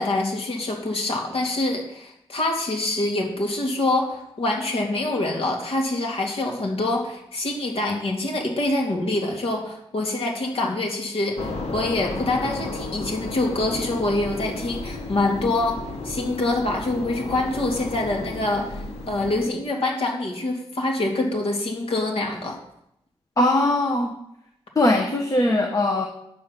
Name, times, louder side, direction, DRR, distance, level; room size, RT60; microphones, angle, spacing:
voice 1, 0.0-22.6, left 2 dB, 65° left, 1 dB, 2.4 m, -25 dB
sound 1, 11.4-19.5, left 2 dB, 80° left, 1.4 m, -33 dB
voice 2, 23.4-24.1 24.8-26.1, left 1 dB, 30° left, 2 dB, 1.2 m, -20 dB
9.4 x 7.1 x 6.0 m, 0.78 s
wide cardioid pair, 105°, 11 cm